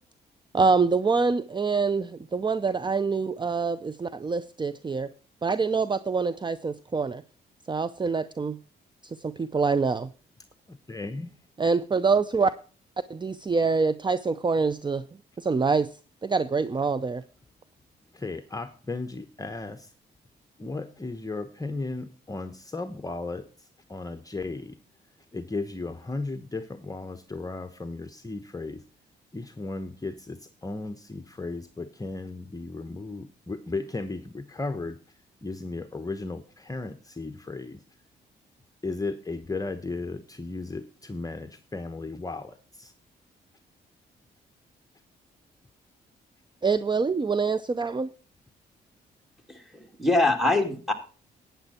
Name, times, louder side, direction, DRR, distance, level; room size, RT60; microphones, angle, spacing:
voice 1, 0.5-5.1 5.4-7.2 7.7-8.6 9.0-10.1 11.6-12.5 13.1-15.0 15.4-15.9 16.2-17.2 46.6-48.1, right 4 dB, 25° right, 15 dB, 0.6 m, -25 dB
voice 2, 10.7-11.3 18.1-19.9 20.6-24.8 25.3-28.8 29.3-35.0 35.4-37.8 38.8-42.9, left 3 dB, 20° left, 7 dB, 1.1 m, -35 dB
voice 3, 49.5-50.9, left 2 dB, ahead, 3 dB, 2.7 m, -24 dB
11.5 x 9.2 x 4.3 m, 0.37 s
supercardioid pair, 60°, 19 cm